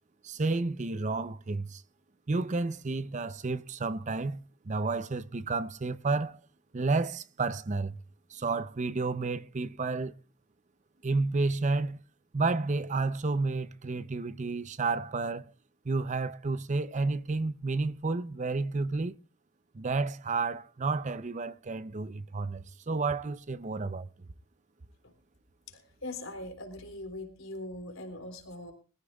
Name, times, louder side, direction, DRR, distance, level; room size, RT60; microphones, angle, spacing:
voice 1, 0.2-1.8 2.3-6.4 6.7-8.0 8.3-10.1 11.0-12.0 12.3-15.5 15.8-19.2 19.7-24.1, right 3 dB, 35° right, 0.6 m, -31 dB
voice 2, 25.7-28.7, left 1 dB, 80° left, 3.6 m, -41 dB
22.5 x 14.5 x 2.3 m
head